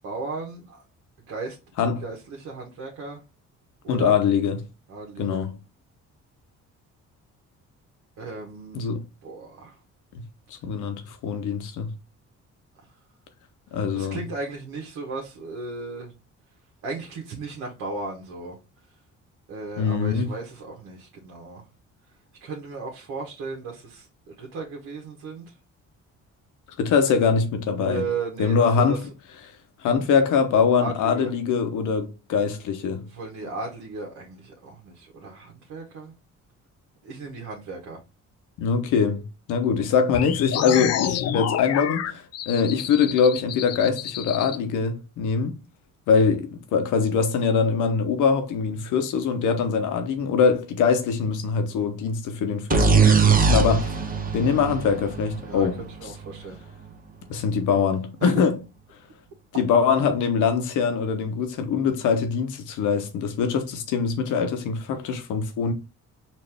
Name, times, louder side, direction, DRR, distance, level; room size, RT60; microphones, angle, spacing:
voice 1, 0.0-0.8 1.3-1.6 2.0-3.2 3.8-4.2 4.9-5.5 8.2-8.9 9.2-9.7 13.9-16.1 16.8-18.6 19.5-21.6 22.4-25.5 27.9-29.0 30.8-31.3 33.1-36.1 37.0-38.0 55.4-56.6 58.2-58.3, right 3 dB, 90° right, 1.1 m, -35 dB
voice 2, 3.9-4.7 5.2-5.6 8.7-9.0 10.1-10.2 10.6-11.9 13.7-14.2 19.8-20.3 26.8-28.1 28.4-29.0 29.8-33.1 38.6-45.5 46.1-53.9 54.3-55.8 57.3-58.6 59.5-65.7, left 6 dB, 85° left, 0.9 m, -23 dB
sound 1, 40.1-44.6, left 10 dB, 55° left, 0.5 m, -29 dB
sound 2, 52.7-56.4, right 5 dB, 30° right, 0.8 m, -21 dB
4.3 x 2.6 x 3.3 m
cardioid pair, 90°, 30 cm